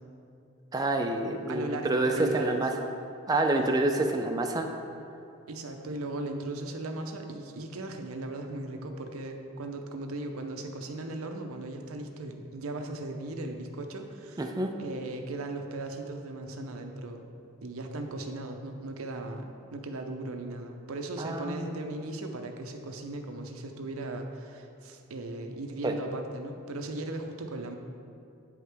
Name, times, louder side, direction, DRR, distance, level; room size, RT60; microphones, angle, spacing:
voice 1, 0.7-2.7 3.3-4.7 14.4-14.7 21.2-21.7 25.8-25.9, right 2 dB, 20° right, 3 dB, 0.4 m, -27 dB
voice 2, 1.5-2.6 3.6-3.9 5.5-14.4 14.8-17.3 17.6-27.8, right 2 dB, 85° right, 4 dB, 0.6 m, -37 dB
8.8 x 4.7 x 3.4 m, 2.6 s
head